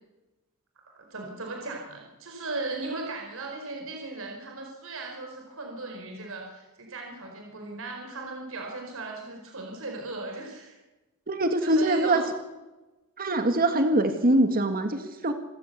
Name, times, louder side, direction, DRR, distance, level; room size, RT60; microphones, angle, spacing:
voice 1, 0.9-10.8 11.6-12.2, right 2 dB, 65° right, 2 dB, 4.9 m, -37 dB
voice 2, 11.3-12.2 13.2-15.3, right 1 dB, 40° right, 7 dB, 2.1 m, -23 dB
27.5 x 15.0 x 8.1 m, 1.1 s
head